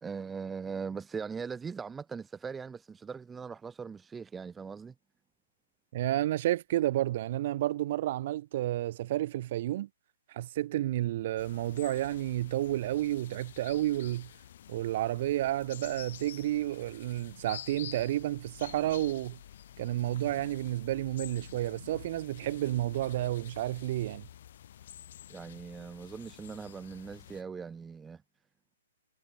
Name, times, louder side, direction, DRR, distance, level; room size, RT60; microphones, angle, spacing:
voice 1, 0.0-4.9 25.3-28.2, right 5 dB, 10° right, 1.8 m, -40 dB
voice 2, 5.9-9.9 10.3-14.3 14.7-19.4 19.8-24.3, right 14 dB, 50° right, 1.0 m, -31 dB
sound 1, 11.4-27.4, left 11 dB, 55° left, 1.5 m, -49 dB
figure-of-eight pair, 120°, 0 cm